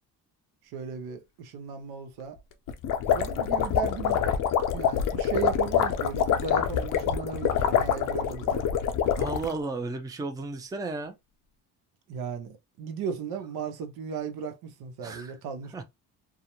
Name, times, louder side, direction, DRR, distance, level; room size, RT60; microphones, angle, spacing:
voice 1, 0.7-2.4 3.0-8.7 12.1-15.8, right 6 dB, 80° right, 0.7 m, -36 dB
sound 1, 2.7-9.5, left 8 dB, 60° left, 0.5 m, -26 dB
voice 2, 9.2-11.2 15.0-15.3 15.7-15.8, right 3 dB, 10° right, 0.4 m, -34 dB
2.3 x 2.0 x 2.9 m
cardioid pair, 100°, 37 cm